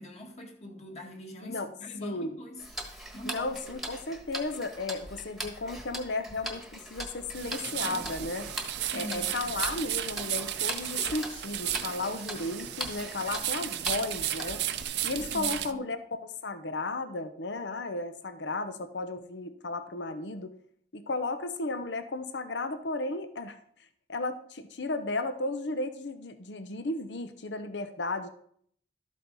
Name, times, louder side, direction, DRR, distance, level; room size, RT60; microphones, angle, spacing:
voice 1, 0.0-2.7 3.1-3.5 8.9-9.5 15.3-15.8, left 1 dB, 35° left, 1 dB, 1.9 m, -42 dB
voice 2, 2.0-2.3 3.2-8.5 8.9-14.6 15.0-20.5 20.9-23.6 24.1-28.3, left 2 dB, 75° left, 10 dB, 0.8 m, -34 dB
Tick-tock, 2.6-14.8, right 1 dB, ahead, 1.3 m, -41 dB
sound 1, 7.3-15.7, right 12 dB, 70° right, 0.6 m, -34 dB
12.5 x 8.3 x 4.1 m, 0.63 s
head